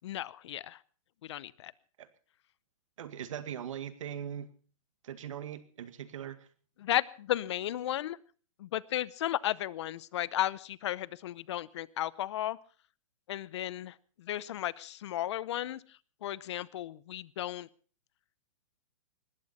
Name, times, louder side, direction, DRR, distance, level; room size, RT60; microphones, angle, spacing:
voice 1, 0.0-0.8 1.2-1.7 6.8-8.2 8.6-12.6 13.3-15.8 16.2-17.7, left 13 dB, 55° left, 22 dB, 0.7 m, -34 dB
voice 2, 3.0-4.5 5.0-6.5, right 9 dB, 70° right, 12 dB, 1.9 m, -40 dB
20.0 x 15.0 x 4.2 m, 0.40 s
hypercardioid pair, 155°, 17 cm